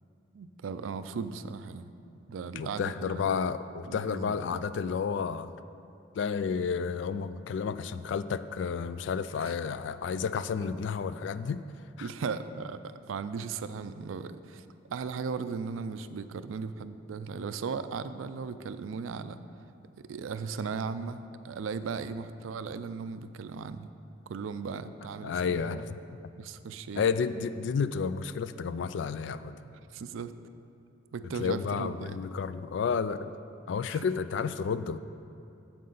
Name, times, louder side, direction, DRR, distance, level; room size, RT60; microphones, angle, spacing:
voice 1, 0.3-1.9 2.3-3.3 3.9-4.4 9.4-9.5 12.0-19.4 20.0-23.9 24.3-25.8 26.4-27.1 29.6-30.3 31.1-32.2 33.9-34.1, right 5 dB, 90° right, 12 dB, 0.4 m, -37 dB
voice 2, 2.6-5.5 6.1-11.6 12.0-12.1 25.2-26.0 27.0-29.5 31.4-33.3 33.7-35.0, left 6 dB, 65° left, 14 dB, 0.3 m, -31 dB
9.5 x 7.5 x 3.9 m, 2.7 s
head